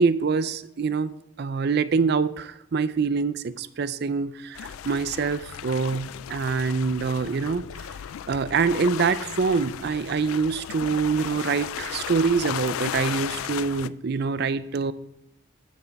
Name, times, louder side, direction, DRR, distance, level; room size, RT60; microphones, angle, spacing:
voice 1, 0.0-7.9 8.3-14.9, right 5 dB, 50° right, 14 dB, 0.4 m, -25 dB
sound 1, 4.5-13.9, left 10 dB, 75° left, 0.3 m, -35 dB
9.2 x 6.9 x 4.6 m, 0.83 s
head